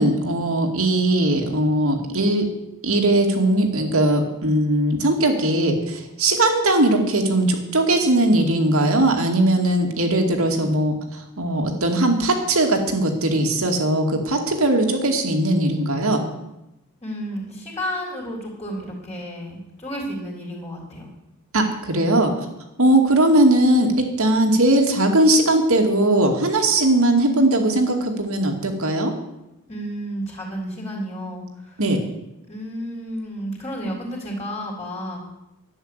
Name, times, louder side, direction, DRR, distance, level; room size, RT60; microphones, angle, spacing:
voice 1, 0.0-2.4 2.8-16.4 21.5-22.3 22.8-29.1 31.8-32.0, right 1 dB, 65° right, 3 dB, 2.4 m, -19 dB
voice 2, 17.0-21.1 29.7-31.8 32.5-35.2, equal, 25° left, -2 dB, 3.6 m, -31 dB
11.5 x 9.6 x 8.2 m, 0.91 s
head